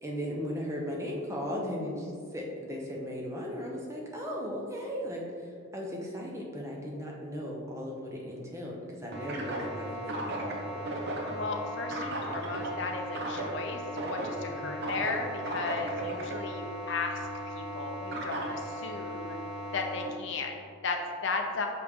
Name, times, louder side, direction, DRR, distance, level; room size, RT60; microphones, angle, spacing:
voice 1, 0.0-10.8 14.5-14.7, equal, 15° right, -2 dB, 0.7 m, -37 dB
sound 1, 9.1-20.1, right 1 dB, 50° right, 0.9 m, -36 dB
voice 2, 11.4-17.2 17.5-19.4 19.7-21.7, left 3 dB, 55° left, 3 dB, 0.6 m, -35 dB
6.0 x 4.9 x 3.6 m, 2.2 s
head